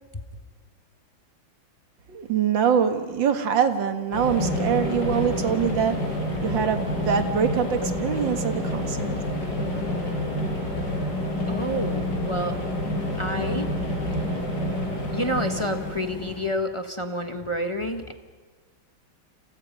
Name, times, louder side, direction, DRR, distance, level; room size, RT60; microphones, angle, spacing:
voice 1, 2.1-9.2, right 7 dB, 60° right, 7 dB, 2.2 m, -24 dB
sound 1, 4.1-16.5, left 1 dB, 50° left, 6.8 m, -28 dB
voice 2, 11.5-12.6 13.2-13.7 15.1-18.1, equal, 20° left, 5 dB, 0.9 m, -29 dB
29.5 x 28.0 x 5.4 m, 1.4 s
omnidirectional pair, 2.4 m